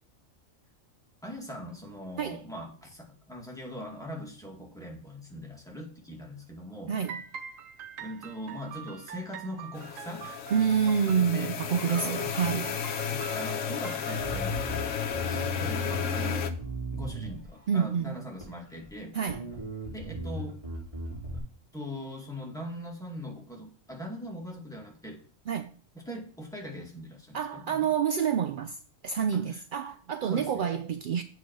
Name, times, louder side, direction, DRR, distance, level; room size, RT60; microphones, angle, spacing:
voice 1, 1.2-6.9 8.0-10.4 11.2-11.5 11.8-12.3 13.1-14.6 15.2-16.5 16.9-19.1 19.9-20.6 21.7-25.2 26.1-27.8 29.5-29.6 30.2-30.7, equal, 5° left, 2.0 m, -41 dB
voice 2, 6.9-7.2 10.5-12.8 17.7-18.2 19.1-19.6 25.5-25.8 27.3-31.2, right 7 dB, 65° right, 0.5 m, -28 dB
sound 1, 7.0-14.4, right 8 dB, 80° right, 1.2 m, -44 dB
sound 2, 9.8-16.5, left 8 dB, 70° left, 1.1 m, -33 dB
Bass guitar, 14.2-17.8 18.4-18.9 19.3-21.4, equal, 25° right, 4.3 m, -36 dB
8.2 x 4.5 x 6.1 m
omnidirectional pair, 1.4 m